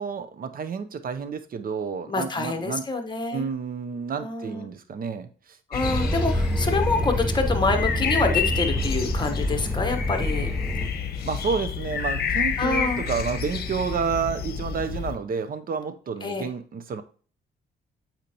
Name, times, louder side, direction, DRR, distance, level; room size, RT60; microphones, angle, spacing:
voice 1, 0.0-2.8 3.3-5.6 11.2-17.0, right 6 dB, 45° right, 10 dB, 0.7 m, -30 dB
voice 2, 2.1-3.5 4.2-4.7 5.7-10.5 12.6-13.0 16.2-16.5, left 3 dB, 20° left, 6 dB, 1.1 m, -26 dB
sound 1, 5.7-15.1, left 7 dB, 50° left, 0.9 m, -29 dB
sound 2, 5.8-10.9, right 1 dB, 5° right, 0.8 m, -27 dB
8.2 x 4.4 x 2.9 m, 0.42 s
cardioid pair, 90°, 20 cm